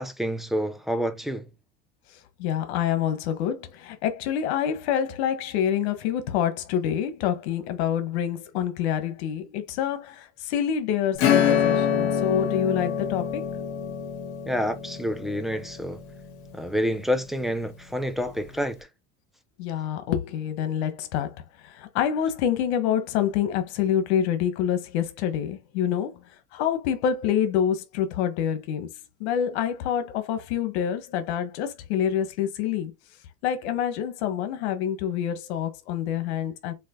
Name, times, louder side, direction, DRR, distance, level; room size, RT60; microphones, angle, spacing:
voice 1, 0.0-1.5 14.5-16.0 16.5-18.8, equal, ahead, 0.4 m, -28 dB
voice 2, 2.4-13.5 19.6-26.2 26.5-32.9 33.4-36.7, left 9 dB, 75° left, 1.6 m, -27 dB
Acoustic guitar / Strum, 11.2-17.4, left 8 dB, 50° left, 2.9 m, -26 dB
7.6 x 3.1 x 3.9 m
cardioid pair, 165°, 33 cm